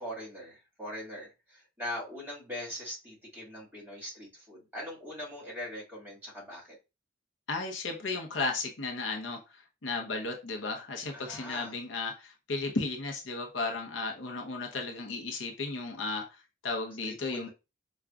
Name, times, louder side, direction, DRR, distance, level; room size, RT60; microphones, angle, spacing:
voice 1, 0.0-6.6 11.1-11.7 17.0-17.5, left 1 dB, 10° right, -6 dB, 1.9 m, -41 dB
voice 2, 7.5-17.5, left 3 dB, 75° left, 2 dB, 0.7 m, -34 dB
4.9 x 2.3 x 2.3 m, 0.28 s
head